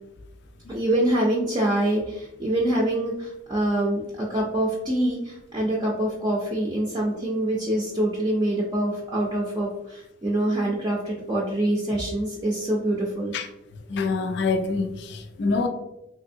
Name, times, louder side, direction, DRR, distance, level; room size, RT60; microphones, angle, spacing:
voice 1, 0.7-13.3, right 1 dB, 20° right, 0.4 m, -25 dB
voice 2, 13.9-15.7, left 4 dB, 60° left, 0.4 m, -25 dB
3.4 x 2.6 x 2.6 m
head